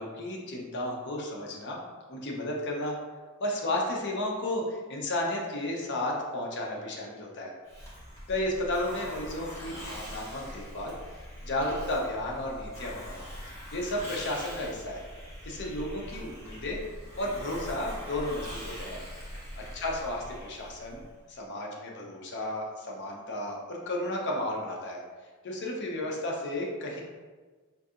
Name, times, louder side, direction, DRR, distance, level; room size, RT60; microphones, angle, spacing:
voice 1, 0.0-1.8 2.1-3.0 3.4-7.5 8.3-10.9 11.4-15.0 15.4-16.8 17.2-19.0 19.6-25.0 25.4-27.0, left 1 dB, 55° left, -1 dB, 0.6 m, -33 dB
Hiss, 7.7-21.2, equal, 15° left, 0.9 m, -42 dB
3.8 x 2.7 x 2.4 m, 1.4 s
head